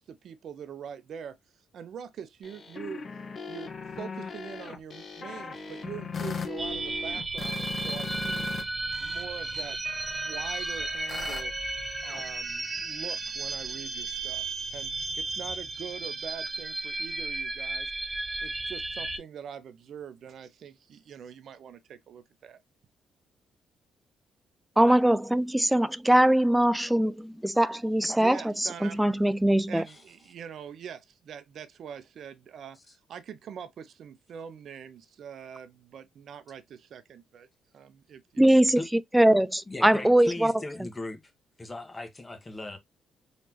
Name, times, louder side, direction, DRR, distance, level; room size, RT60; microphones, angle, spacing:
voice 1, 0.0-1.4 1.7-3.0 3.5-8.4 9.0-11.5 12.0-14.4 14.7-17.9 18.4-22.6 28.2-29.0 29.7-32.8 33.1-37.5 37.7-38.4, right 8 dB, 65° right, 0.7 m, -43 dB
sound 1, 2.4-8.6 8.9-12.2, left 4 dB, 45° left, 1.0 m, -39 dB
sound 2, 6.6-19.2, right 3 dB, 25° right, 0.8 m, -34 dB
voice 2, 24.8-29.8 38.4-38.8 39.1-40.5, right 1 dB, 5° right, 0.4 m, -22 dB
voice 3, 29.9-30.3 32.7-33.0 38.4-38.9 39.6-41.3 41.6-42.8, left 2 dB, 20° left, 1.2 m, -39 dB
4.1 x 3.1 x 2.8 m
cardioid pair, 90°, 0 cm